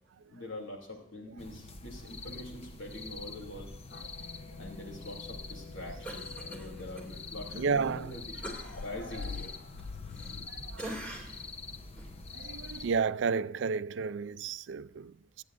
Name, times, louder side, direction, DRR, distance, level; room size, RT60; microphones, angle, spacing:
voice 1, 0.3-4.3 4.6-8.2 8.8-9.5, left 1 dB, 75° left, 2.8 m, -44 dB
sound 1, 1.4-13.0, left 3 dB, 30° left, 0.7 m, -45 dB
sound 2, 3.9-10.5, left 5 dB, 50° left, 0.3 m, -46 dB
Cough, 6.0-7.1 7.5-7.6 8.4-10.5 10.8-11.5 12.0-12.1, right 1 dB, 5° left, 2.5 m, -44 dB
voice 2, 7.5-8.2 10.5-11.1 12.3-15.4, right 5 dB, 65° right, 0.4 m, -32 dB
22.5 x 8.8 x 2.6 m
head